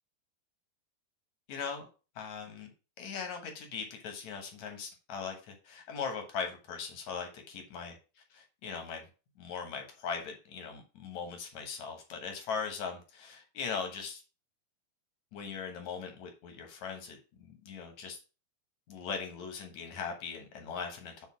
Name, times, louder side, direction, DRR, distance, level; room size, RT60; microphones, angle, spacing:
voice 1, 1.5-1.9 2.2-2.7 3.0-8.0 8.3-9.0 9.4-14.2 15.3-18.2 18.9-21.3, left 6 dB, 65° left, 4 dB, 2.0 m, -39 dB
8.2 x 4.0 x 5.8 m, 0.33 s
omnidirectional pair, 4.6 m